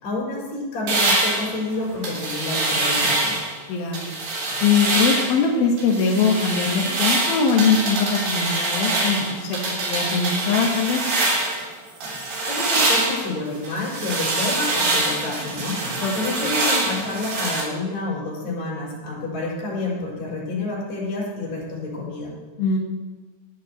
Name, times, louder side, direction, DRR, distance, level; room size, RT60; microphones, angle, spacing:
voice 1, 0.0-3.4 12.2-15.8 16.1-22.3, left 2 dB, 45° left, -5 dB, 6.4 m, -29 dB
sound 1, 0.9-3.5 3.9-5.4 5.8-11.7 12.0-17.6, right 2 dB, 60° right, 4.9 m, -24 dB
voice 2, 3.7-4.1 4.6-11.0 16.0-16.2 22.6-22.8, left 5 dB, 70° left, 0 dB, 2.4 m, -21 dB
19.0 x 12.0 x 3.0 m, 1.3 s
omnidirectional pair, 5.7 m